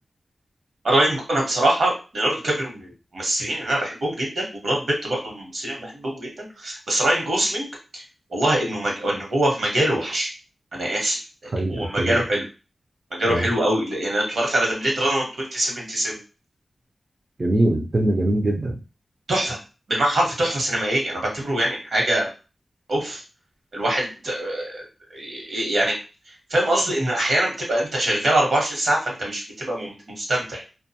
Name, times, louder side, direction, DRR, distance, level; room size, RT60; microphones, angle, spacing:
voice 1, 0.8-2.9 3.1-7.7 7.9-8.0 8.3-10.3 10.7-12.4 13.1-16.2 19.3-19.6 19.9-22.3 22.9-23.2 23.7-24.8 25.1-25.9 26.5-30.6, right 1 dB, 70° right, -1 dB, 1.1 m, -23 dB
voice 2, 11.5-12.2 13.2-13.5 17.4-18.8, right 1 dB, 40° right, -1 dB, 0.4 m, -22 dB
2.4 x 2.2 x 2.7 m, 0.32 s
wide cardioid pair, 80°, 0 cm